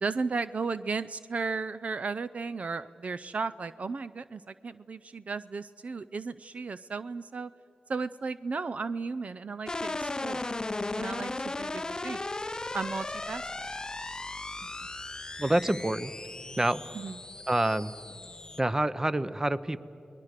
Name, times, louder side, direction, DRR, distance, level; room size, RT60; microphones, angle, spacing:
voice 1, 0.0-7.5 7.9-10.6 11.0-12.2 12.7-13.4 16.9-17.2, right 4 dB, 55° right, 14 dB, 0.5 m, -35 dB
sound 1, 9.7-18.6, left 2 dB, 25° left, 0.6 m, -36 dB
voice 2, 15.4-16.1 16.6-16.8 17.5-17.9 18.6-19.8, right 1 dB, 20° right, 14 dB, 0.8 m, -27 dB
29.5 x 20.5 x 6.6 m, 2.9 s
cardioid pair, 65°, 3 cm